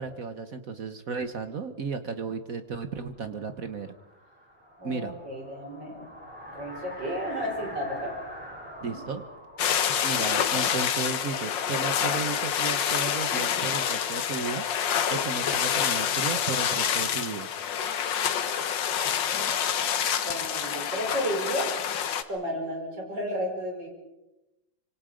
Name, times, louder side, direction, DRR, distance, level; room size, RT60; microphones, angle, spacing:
voice 1, 0.0-3.9 4.8-5.1 8.8-9.2 10.0-14.6 15.1-17.5, right 5 dB, 50° right, 9 dB, 1.4 m, -34 dB
sound 1, 2.9-11.8, equal, 5° right, 7.3 m, -45 dB
voice 2, 4.8-6.1 6.5-8.2 8.8-9.0 20.2-21.7 22.3-23.9, equal, 65° right, 1 dB, 6.2 m, -32 dB
sound 2, 9.6-22.2, left 8 dB, 70° left, 1.8 m, -27 dB
26.0 x 25.5 x 5.2 m, 0.96 s
omnidirectional pair, 2.1 m